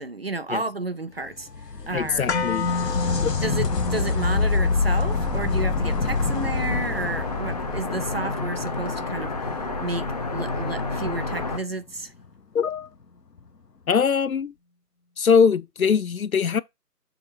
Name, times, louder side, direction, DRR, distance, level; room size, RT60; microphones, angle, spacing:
voice 1, 0.0-1.5 1.9-2.3 3.4-9.5 9.8-12.1, right 2 dB, 40° right, 0.5 m, -31 dB
sound 1, 1.3-8.9 12.2-12.3 13.4-13.5, left 4 dB, 80° left, 1.3 m, -26 dB
voice 2, 1.9-2.7 3.2-3.3 12.5-12.9 13.9-14.5 15.2-16.6, left 6 dB, 60° left, 0.6 m, -22 dB
sound 2, 2.3-10.4 10.7-10.8, left 3 dB, 45° left, 1.2 m, -33 dB
sound 3, 2.6-11.6, left 3 dB, 25° left, 0.9 m, -31 dB
6.6 x 4.4 x 4.2 m
figure-of-eight pair, 155°, 48 cm